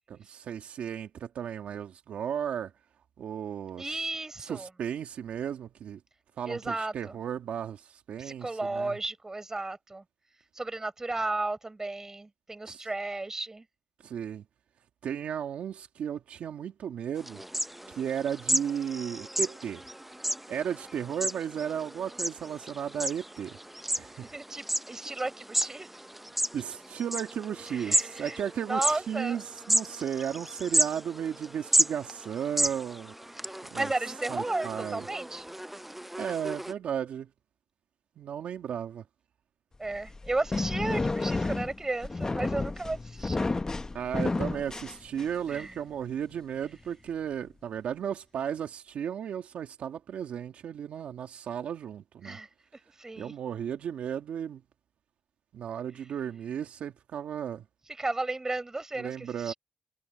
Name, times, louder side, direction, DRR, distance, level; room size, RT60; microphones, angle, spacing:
voice 1, 0.1-2.7 3.2-4.0 4.4-6.0 6.4-9.0 12.7-12.9 14.0-14.4 15.0-17.4 17.9-19.8 20.5-23.6 23.9-24.3 26.5-33.1 33.7-33.9 34.3-35.0 36.2-37.3 38.2-39.0 43.9-52.4 53.2-54.6 55.5-57.6 59.0-59.5, right 8 dB, 80° right, 1.7 m, -34 dB
voice 2, 3.8-4.7 6.5-7.2 8.2-10.0 10.5-13.7 24.3-26.1 27.7-28.4 28.7-29.4 32.6-32.7 33.4-35.5 39.8-43.6 45.5-45.8 52.2-52.5 53.0-53.3 57.9-59.6, right 2 dB, 25° right, 7.2 m, -34 dB
sound 1, 17.2-36.7, right 1 dB, 5° right, 0.6 m, -33 dB
sound 2, 39.9-45.5, left 3 dB, 25° left, 0.9 m, -31 dB
cardioid pair, 75°, 2 cm